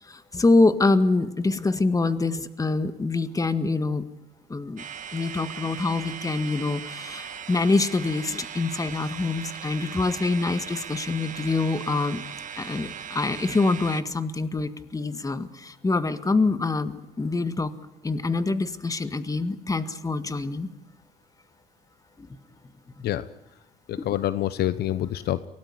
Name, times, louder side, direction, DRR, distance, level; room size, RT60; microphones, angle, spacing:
voice 1, 0.0-4.1 4.5-4.8 5.1-12.3 12.6-17.7 18.0-20.7 22.2-22.3 24.0-24.1, left 3 dB, 20° left, 11 dB, 1.8 m, -25 dB
sound 1, 4.8-14.0, right 8 dB, 50° right, 1.5 m, -39 dB
voice 2, 23.0-23.3 23.9-25.5, left 13 dB, 70° left, 15 dB, 0.9 m, -27 dB
24.0 x 18.0 x 9.9 m, 0.94 s
cardioid pair, 90°, 17 cm